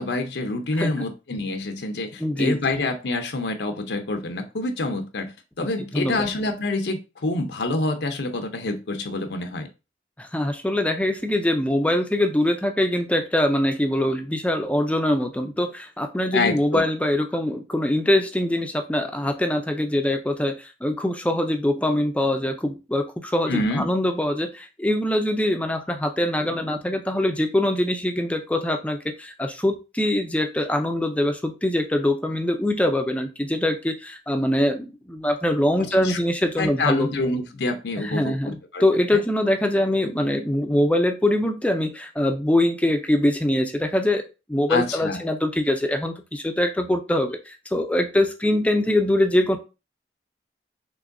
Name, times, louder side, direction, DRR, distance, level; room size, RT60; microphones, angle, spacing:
voice 1, 0.0-9.7 16.3-16.9 23.5-23.9 35.8-36.2 36.6-38.8 39.1-39.2 44.7-45.2, left 2 dB, 85° left, 6 dB, 0.6 m, -27 dB
voice 2, 2.2-2.6 5.6-6.3 10.2-37.1 38.0-44.2 44.5-49.6, left 1 dB, 10° left, 6 dB, 0.4 m, -23 dB
6.1 x 3.0 x 2.5 m, 0.29 s
head